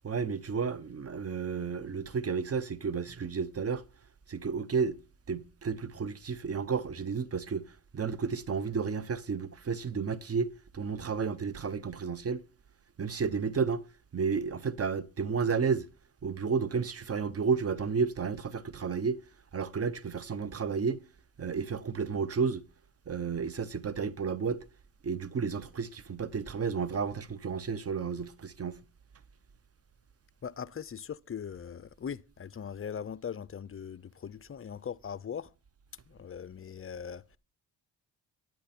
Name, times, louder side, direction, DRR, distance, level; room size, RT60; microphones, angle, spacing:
voice 1, 0.0-3.8 4.3-5.0 5.3-12.4 13.0-13.8 14.1-15.9 16.2-19.2 19.5-21.0 21.4-22.6 23.1-24.6 25.0-28.8, right 5 dB, 30° right, 0.9 m, -32 dB
voice 2, 30.4-35.5 36.1-37.4, left 7 dB, 30° left, 0.6 m, -40 dB
10.0 x 9.1 x 4.3 m
supercardioid pair, 70°, 46 cm